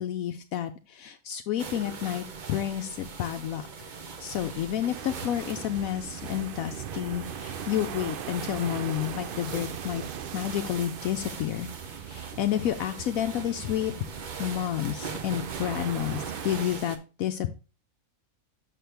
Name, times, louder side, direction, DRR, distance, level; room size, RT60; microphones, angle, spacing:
voice 1, 0.0-3.6 4.2-10.0 10.3-13.9 14.4-17.5, left 11 dB, 75° left, 8 dB, 1.0 m, -30 dB
sound 1, 1.6-17.0, right 5 dB, 40° right, 0.7 m, -41 dB
sound 2, 4.9-16.7, right 9 dB, 85° right, 0.4 m, -40 dB
6.5 x 6.0 x 3.3 m, 0.33 s
omnidirectional pair, 1.6 m